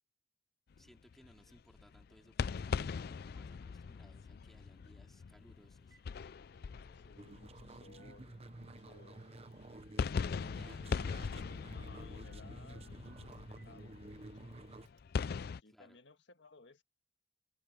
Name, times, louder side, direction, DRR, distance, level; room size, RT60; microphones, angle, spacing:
sound 1, 0.7-9.1 9.6-15.6, left 5 dB, 60° left, 0.4 m, -41 dB
voice 1, 0.8-6.0 10.5-10.8 15.7-16.0, equal, ahead, 3.8 m, -64 dB
Telephone, 5.4-5.5 5.8-6.1 6.4-7.7 8.0-8.9 10.1-10.3 10.6-11.3 11.8-13.8 14.1-14.2 14.9-15.0, right 5 dB, 85° right, 3.6 m, -68 dB
voice 2, 6.9-9.6 10.0-11.0 11.3-14.8 15.3-16.8, left 3 dB, 75° left, 1.7 m, -61 dB
sound 2, 7.2-14.9, right 2 dB, 35° right, 0.9 m, -52 dB
head